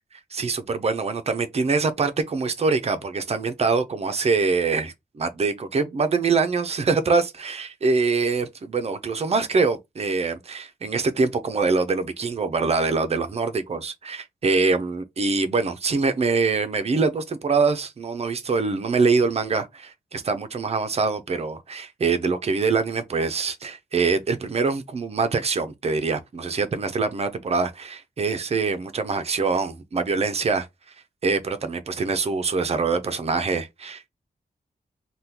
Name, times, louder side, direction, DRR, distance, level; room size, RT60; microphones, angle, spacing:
voice 1, 0.3-30.7 31.2-34.1, right 4 dB, 40° right, 0.5 m, -24 dB
3.5 x 2.2 x 2.8 m
wide cardioid pair, 165°, 16 cm